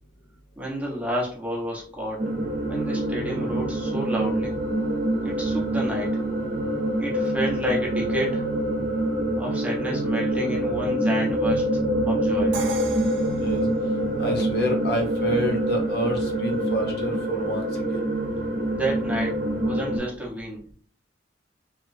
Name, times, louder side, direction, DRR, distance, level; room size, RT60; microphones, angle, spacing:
voice 1, 0.6-2.2 2.7-4.5 5.2-6.2 7.0-8.5 9.4-11.7 12.0-12.6 18.7-20.7, right 1 dB, 10° right, -4 dB, 0.8 m, -30 dB
sound 1, 2.2-20.0, right 1 dB, 50° right, 0.8 m, -25 dB
Crash cymbal, 12.5-14.4, right 5 dB, 65° right, 0.4 m, -38 dB
voice 2, 14.2-18.1, equal, 60° left, 2 dB, 0.8 m, -28 dB
2.9 x 2.9 x 2.6 m, 0.43 s
head